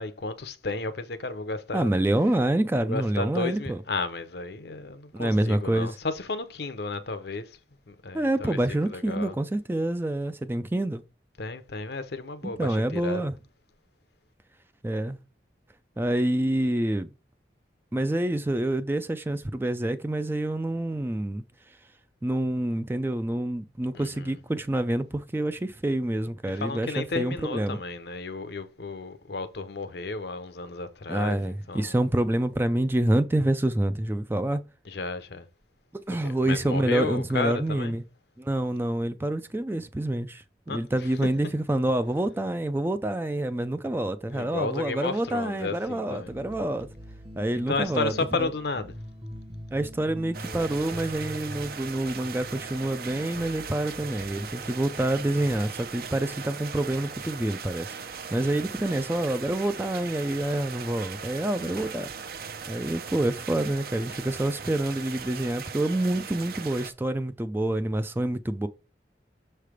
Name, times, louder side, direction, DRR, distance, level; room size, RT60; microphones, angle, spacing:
voice 1, 0.0-1.9 2.8-7.6 7.9-8.6 8.9-9.3 11.4-13.2 23.9-24.3 26.6-32.0 34.9-35.5 36.2-37.9 40.7-40.8 44.3-46.3 47.7-48.9 61.6-61.9, left 3 dB, 65° left, 0.7 m, -33 dB
voice 2, 1.7-3.8 5.1-6.0 8.1-11.0 12.6-13.4 14.8-15.2 16.0-17.1 17.9-21.4 22.2-27.8 31.1-34.6 35.9-38.0 38.4-46.9 47.4-48.1 48.4-48.5 49.7-62.1 62.7-68.7, right 1 dB, 10° right, 0.3 m, -27 dB
sound 1, 46.2-55.8, equal, 30° right, 0.9 m, -43 dB
sound 2, 50.3-66.9, right 6 dB, 55° right, 0.6 m, -39 dB
6.6 x 3.3 x 5.0 m
head